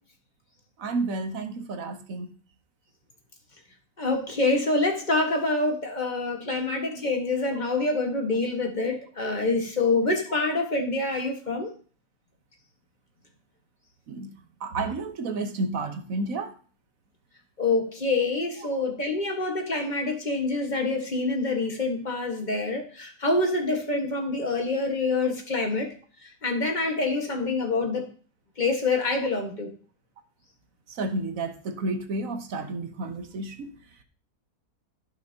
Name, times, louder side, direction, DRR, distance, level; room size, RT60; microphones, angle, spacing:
voice 1, 0.8-2.3 6.5-6.7 14.1-14.3 14.6-16.5 31.0-33.7, right 2 dB, 65° right, 8 dB, 1.4 m, -31 dB
voice 2, 4.0-11.7 17.6-25.9 26.4-28.0 28.6-29.7, left 3 dB, 30° left, 3 dB, 1.6 m, -26 dB
15.0 x 6.1 x 2.8 m, 0.41 s
omnidirectional pair, 1.6 m